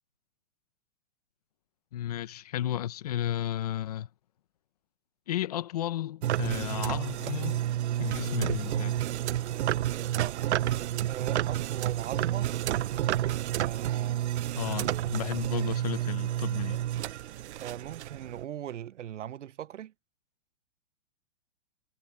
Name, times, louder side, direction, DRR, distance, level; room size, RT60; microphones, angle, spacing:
voice 1, 1.9-4.1 5.3-7.6 8.0-9.0 14.6-16.8, left 12 dB, 35° left, 0.8 m, -33 dB
sound 1, 6.2-18.4, right 12 dB, 70° right, 0.6 m, -30 dB
voice 2, 11.1-12.5 13.6-14.2 17.5-19.9, right 11 dB, 90° right, 0.9 m, -40 dB
hypercardioid pair, 175°, 35 cm